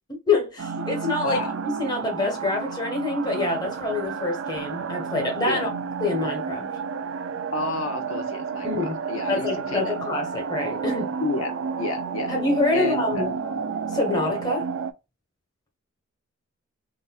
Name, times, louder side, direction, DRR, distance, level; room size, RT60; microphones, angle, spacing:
voice 1, 0.3-5.7 6.0-6.7 8.6-9.0 9.3-11.1 12.3-13.3 13.9-14.7, left 2 dB, 20° left, 1.2 m, -26 dB
sound 1, 0.6-14.9, right 5 dB, 65° right, 0.4 m, -31 dB
voice 2, 1.2-1.5 5.5-5.7 7.5-10.0 11.2-11.5 11.8-12.3 12.7-13.4, left 2 dB, 85° left, 0.8 m, -30 dB
3.9 x 2.5 x 2.3 m
head